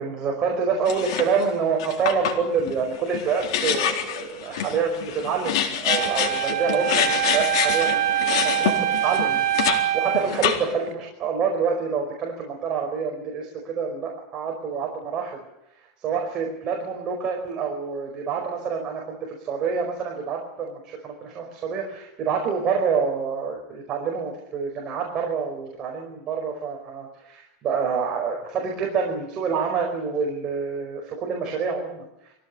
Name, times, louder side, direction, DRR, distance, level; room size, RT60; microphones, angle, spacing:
voice 1, 0.0-8.0 8.4-15.4 16.0-32.3, right 5 dB, 30° right, 0 dB, 5.2 m, -27 dB
sound 1, 0.9-1.4 1.8-9.8 10.1-10.9, left 9 dB, 85° left, 4.1 m, -26 dB
Wind instrument woodwind instrument, 5.9-10.3, right 12 dB, 70° right, 6.0 m, -24 dB
24.5 x 17.0 x 9.9 m, 0.84 s
supercardioid pair, 160°, 3 cm